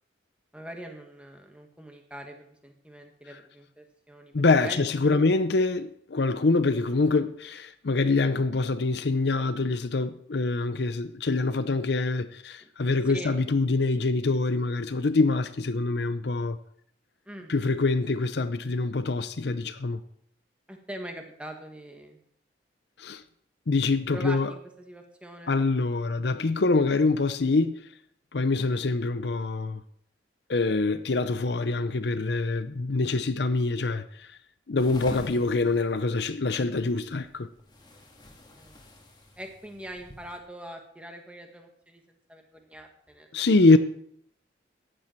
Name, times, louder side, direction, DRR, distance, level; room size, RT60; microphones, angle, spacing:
voice 1, 0.5-4.3 4.6-4.8 5.0-5.2 13.1-13.3 17.2-17.5 20.7-22.2 24.1-25.5 38.6-38.8 39.4-43.3, right 1 dB, 5° right, 1.7 m, -42 dB
voice 2, 4.3-16.6 17.5-20.0 23.0-23.2 23.7-24.5 25.5-27.9 28.3-29.8 30.5-34.3 34.7-37.5 43.3-43.8, left 3 dB, 60° left, 0.6 m, -25 dB
sound 1, 34.8-40.4, left 1 dB, 25° left, 1.9 m, -46 dB
14.5 x 10.0 x 4.5 m
head